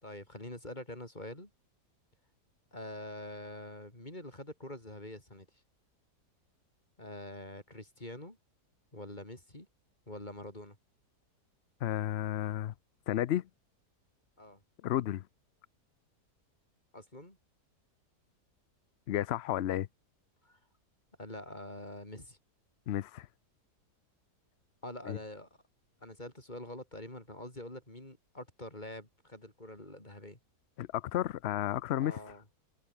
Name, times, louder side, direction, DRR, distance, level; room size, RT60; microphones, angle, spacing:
voice 1, 0.0-1.5 2.7-5.5 7.0-8.4 8.9-9.7 10.1-10.8 14.4-14.6 16.9-17.4 20.4-20.6 21.2-22.4 24.8-25.5 26.0-30.4 32.0-32.4, left 1 dB, 25° left, 6.3 m, -45 dB
voice 2, 11.8-12.7 13.1-13.5 14.8-15.2 19.1-19.9 22.9-23.3 25.1-25.2 30.8-32.2, left 12 dB, 75° left, 0.6 m, -32 dB
omnidirectional pair, 1.8 m